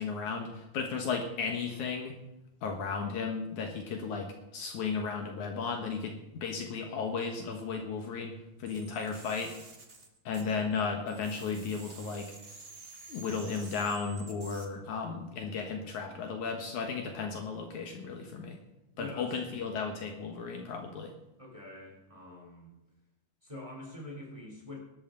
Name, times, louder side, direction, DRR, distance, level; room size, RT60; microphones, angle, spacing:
voice 1, 0.0-2.2 2.6-9.5 10.3-12.3 13.1-18.6 19.0-21.1, left 5 dB, 65° left, 3 dB, 2.5 m, -35 dB
sound 1, 8.7-10.8 11.1-14.7, right 3 dB, 50° right, 0.7 m, -50 dB
voice 2, 18.9-19.4 21.4-22.7 23.4-24.8, left 2 dB, 10° right, -1 dB, 3.1 m, -45 dB
18.0 x 12.5 x 3.9 m, 0.93 s
omnidirectional pair, 3.9 m